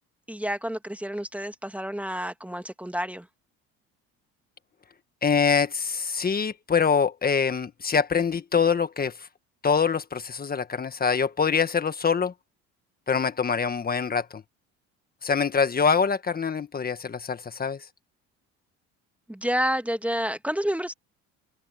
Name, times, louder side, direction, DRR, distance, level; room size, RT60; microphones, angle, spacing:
voice 1, 0.3-3.3 19.3-20.9, equal, 5° right, 1.6 m, -29 dB
voice 2, 5.2-9.3 9.6-12.3 13.1-14.4 15.2-17.9, left 6 dB, 30° left, 1.5 m, -24 dB
open air
supercardioid pair, 95°, 31 cm